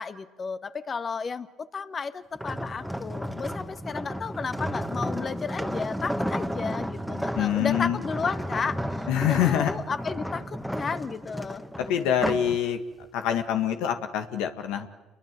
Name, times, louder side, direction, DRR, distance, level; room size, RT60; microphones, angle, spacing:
voice 1, 0.0-11.6, left 5 dB, 35° left, 11 dB, 1.7 m, -33 dB
sound 1, 2.4-12.6 13.0-13.3, equal, ahead, 1.8 m, -32 dB
voice 2, 7.4-8.0 9.1-9.7 11.9-12.8 13.1-14.9, left 10 dB, 75° left, 7 dB, 1.9 m, -25 dB
29.0 x 22.5 x 7.7 m, 1.1 s
supercardioid pair, 75°, 0 cm